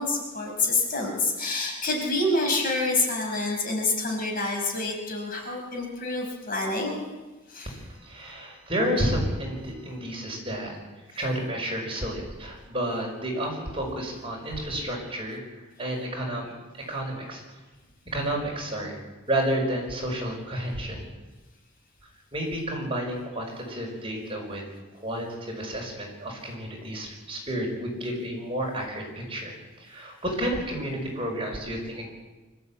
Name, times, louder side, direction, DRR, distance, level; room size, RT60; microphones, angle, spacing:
voice 1, 0.0-7.0 7.5-7.7, left 2 dB, 40° left, 1 dB, 5.4 m, -27 dB
voice 2, 7.7-10.8 11.2-17.4 18.1-19.0 19.3-21.1 22.3-24.7 24.9-32.1, right 1 dB, 25° right, 0 dB, 5.4 m, -31 dB
25.0 x 13.5 x 8.8 m, 1.2 s
head